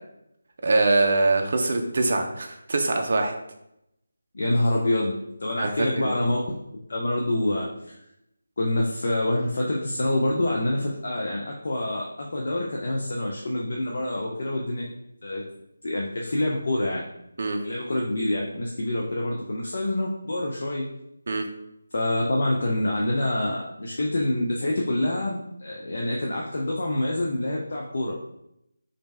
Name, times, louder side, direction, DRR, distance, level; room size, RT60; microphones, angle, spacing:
voice 1, 0.6-3.3 5.6-6.1 17.4-17.6 21.3-21.4, right 3 dB, 50° right, 3 dB, 0.4 m, -23 dB
voice 2, 4.3-6.6 6.9-7.7 8.6-14.9 15.2-15.4 15.8-17.0 17.6-20.9 21.9-28.2, left 1 dB, 55° left, -2 dB, 0.5 m, -26 dB
3.1 x 2.6 x 3.2 m, 0.82 s
figure-of-eight pair, 160°, 0 cm